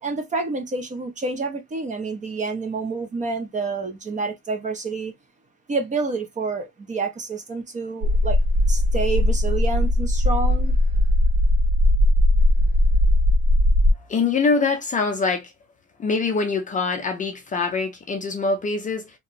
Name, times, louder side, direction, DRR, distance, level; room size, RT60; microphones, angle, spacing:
voice 1, 0.0-5.1 5.7-8.4 8.7-10.8, right 3 dB, 25° right, 0.5 m, -28 dB
sound 1, 8.0-13.9, left 1 dB, 70° right, 1.4 m, -18 dB
voice 2, 14.1-15.5 16.0-19.1, left 4 dB, 25° left, 0.5 m, -24 dB
2.9 x 2.8 x 2.4 m
cardioid pair, 180°, 32 cm